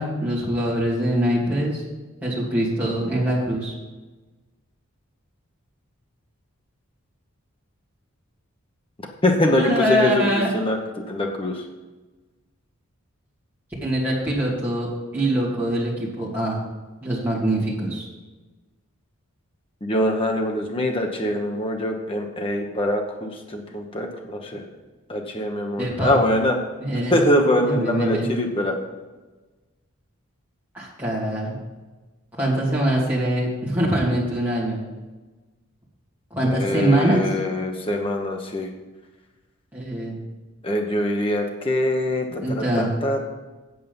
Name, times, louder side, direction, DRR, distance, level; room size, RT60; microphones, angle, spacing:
voice 1, 0.0-1.8 2.2-3.7 9.4-10.5 13.8-14.9 15.1-16.6 17.0-18.1 25.8-26.2 26.8-27.2 27.6-28.2 30.7-31.5 32.4-34.8 36.3-37.3 39.7-40.1 42.4-42.9, right 1 dB, 10° right, -8 dB, 2.6 m, -23 dB
voice 2, 9.2-10.8 11.1-11.6 19.8-24.6 25.1-26.6 27.1-28.8 36.4-38.7 40.6-43.2, left 1 dB, 25° left, 2 dB, 0.9 m, -23 dB
8.4 x 8.0 x 5.3 m, 1.2 s
head